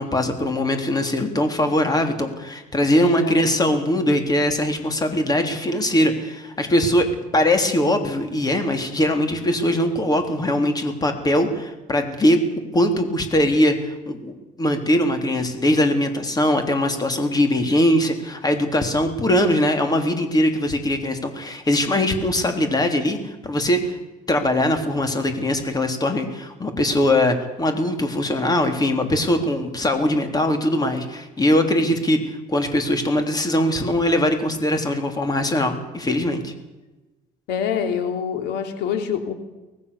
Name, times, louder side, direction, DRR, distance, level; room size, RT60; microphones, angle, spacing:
voice 1, 0.0-7.1 7.3-12.4 12.7-14.3 14.6-24.0 24.3-36.5, left 1 dB, 20° left, 6 dB, 3.5 m, -21 dB
voice 2, 3.0-3.4 37.5-39.3, left 7 dB, 90° left, 6 dB, 3.1 m, -25 dB
24.0 x 19.5 x 7.1 m, 1.1 s
cardioid pair, 110°, 17 cm